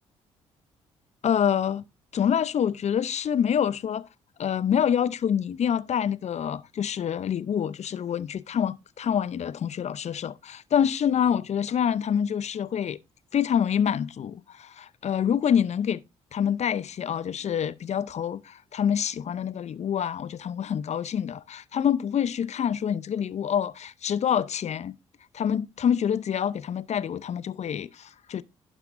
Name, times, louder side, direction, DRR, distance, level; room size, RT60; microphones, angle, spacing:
voice 1, 1.2-1.9 2.1-4.1 4.4-13.0 13.3-16.0 16.3-25.0 25.3-28.4, left 8 dB, 50° left, 0.6 m, -26 dB
11.0 x 9.6 x 2.6 m
hypercardioid pair, 45°, 15 cm